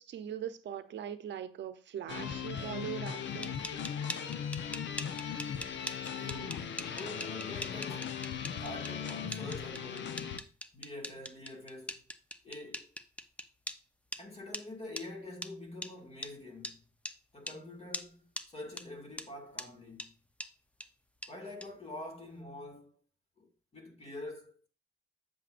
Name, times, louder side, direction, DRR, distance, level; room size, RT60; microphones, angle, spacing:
voice 1, 0.0-3.6, right 9 dB, 65° right, 0.8 m, -41 dB
sound 1, 2.1-10.4, left 7 dB, 65° left, 0.9 m, -38 dB
sound 2, 3.2-13.8 14.1-14.2 14.5-14.6 15.0-15.1 15.4-15.5 15.8-15.9 16.2-16.3 16.6-16.8 17.0-17.2 17.5-17.6 17.9-18.1 18.4-18.5 18.8-18.9 19.2-19.3 19.6-19.7 20.0-20.1 20.4-20.5 20.8-20.9 21.2-21.3 21.6-21.7, left 1 dB, 5° left, 0.7 m, -41 dB
voice 2, 6.2-8.3 8.6-10.5 10.7-12.0 12.4-12.9 14.2-16.9 17.3-20.2 21.3-22.9 23.4-24.7, left 1 dB, 30° left, 2.3 m, -46 dB
8.7 x 7.3 x 2.5 m
cardioid pair, 90°, 20 cm